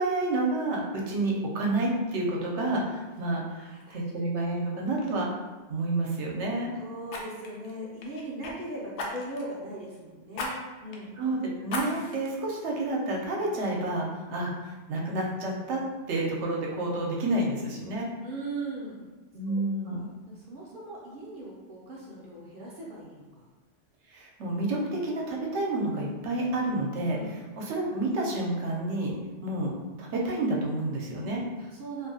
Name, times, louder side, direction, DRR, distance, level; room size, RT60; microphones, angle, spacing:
voice 1, 0.0-3.4 3.9-5.4 5.7-6.7 11.2-15.8 16.1-18.1 19.3-20.1 24.1-27.2 27.5-29.1 29.4-29.7 30.0-31.4, right 2 dB, 80° right, -1 dB, 0.9 m, -29 dB
voice 2, 3.5-4.0 6.8-11.3 14.1-14.3 18.2-19.1 19.5-23.5 27.1-27.4 31.6-32.1, right 2 dB, 55° right, -5 dB, 0.7 m, -40 dB
Fire, 4.4-4.6 5.0-5.2 7.1-8.5 9.0-9.5 10.3-10.5 10.9-11.0 11.7-12.3 12.8-12.9, left 2 dB, 75° left, 0.8 m, -36 dB
2.7 x 2.5 x 2.6 m, 1.2 s
omnidirectional pair, 1.2 m